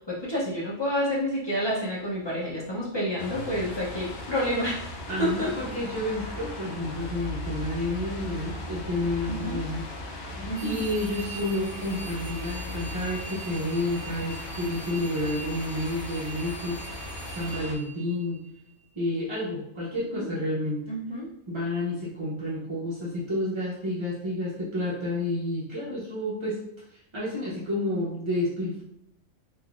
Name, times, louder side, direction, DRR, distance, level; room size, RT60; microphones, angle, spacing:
voice 1, 0.1-4.9 5.2-5.5 9.3-9.6 10.4-10.8 20.1-20.3 20.9-21.3, equal, 40° left, -6 dB, 0.4 m, -29 dB
sound 1, 3.2-17.7, left 2 dB, 65° left, 0.7 m, -38 dB
voice 2, 5.1-16.8 17.3-18.4 19.0-20.8 21.5-26.6 26.9-28.8, left 1 dB, 40° right, -8 dB, 0.4 m, -30 dB
sound 2, 10.5-18.7, right 4 dB, 60° right, 0.8 m, -43 dB
3.7 x 2.4 x 2.3 m, 0.80 s
omnidirectional pair, 1.3 m